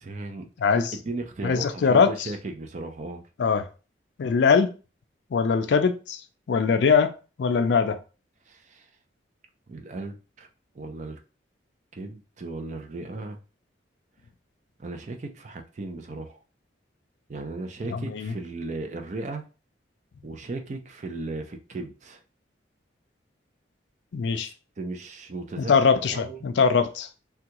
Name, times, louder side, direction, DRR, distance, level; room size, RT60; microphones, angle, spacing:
voice 1, 0.0-0.5 0.7-3.2 8.5-8.9 9.7-10.5 10.7-11.2 11.9-13.4 14.8-16.4 17.3-19.4 20.2-22.2 24.3-25.7 26.1-26.4, right 2 dB, 40° right, 0.4 m, -36 dB
voice 2, 1.4-2.1 3.4-3.7 4.2-4.7 5.3-6.2 6.5-7.1 7.4-8.0 17.9-18.3 24.1-24.5 25.6-27.1, left 5 dB, 65° left, 0.4 m, -21 dB
3.4 x 2.3 x 2.9 m
head